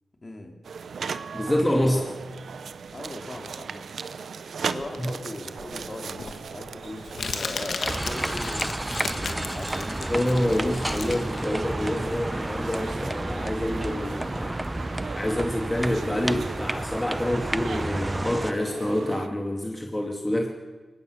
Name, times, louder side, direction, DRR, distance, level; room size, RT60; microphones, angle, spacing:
voice 1, 0.2-0.6 1.5-2.1 2.9-3.8 4.7-10.8, left 2 dB, 35° left, 3 dB, 3.4 m, -39 dB
sound 1, 0.6-19.3, right 6 dB, 80° right, 0.9 m, -38 dB
voice 2, 1.3-2.0 5.0-5.1 10.1-14.5 15.1-20.5, left 1 dB, 15° left, 1 dB, 2.4 m, -27 dB
Crumpling crinkling, 5.6-12.7, left 4 dB, 70° left, 1.9 m, -36 dB
sound 2, 7.8-18.5, right 1 dB, 15° right, 0.7 m, -31 dB
23.0 x 20.0 x 6.7 m, 1.2 s
cardioid pair, 70°, 0 cm